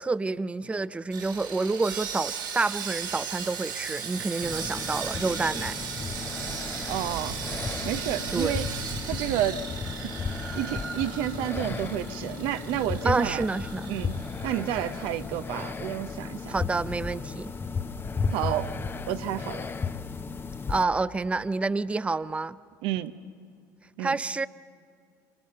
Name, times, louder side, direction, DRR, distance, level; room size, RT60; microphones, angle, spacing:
voice 1, 0.0-5.8 8.3-8.6 13.0-13.9 16.5-17.5 20.7-22.6 24.0-24.5, right 3 dB, 10° right, 0.5 m, -28 dB
Sawing, 1.1-15.4 15.6-15.8 16.3-16.4, right 7 dB, 85° right, 3.7 m, -37 dB
sound 1, 4.4-20.8, left 5 dB, 20° left, 0.9 m, -34 dB
voice 2, 6.8-7.4 7.8-8.7 9.1-9.6 10.0-10.1 10.5-13.5 13.9-14.2 14.4-16.6 18.3-18.7 19.1-19.7 22.8-23.1 24.0-24.2, right 12 dB, 60° right, 0.9 m, -30 dB
26.0 x 25.5 x 5.5 m
hypercardioid pair, 75°, 10 cm